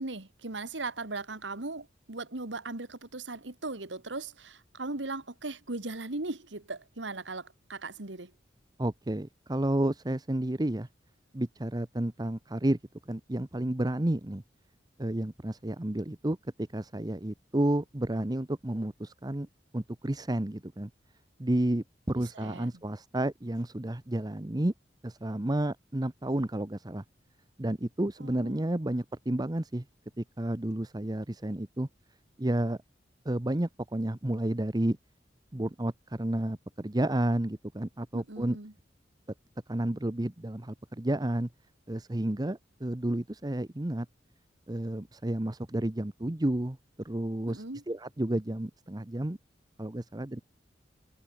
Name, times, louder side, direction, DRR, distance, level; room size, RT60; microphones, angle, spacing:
voice 1, 0.0-8.3 22.2-22.7 28.2-28.6 38.1-38.7 47.5-47.8, right 2 dB, 85° right, 2.2 m, -38 dB
voice 2, 8.8-10.9 11.3-12.8 13.1-14.4 15.0-16.4 16.7-19.5 19.7-20.9 21.4-24.7 25.0-27.0 27.6-29.8 30.2-31.9 32.4-32.8 33.2-35.0 35.5-38.6 39.7-41.5 41.9-44.1 44.7-46.8 47.0-49.4 49.8-50.4, right 1 dB, 20° right, 0.9 m, -31 dB
head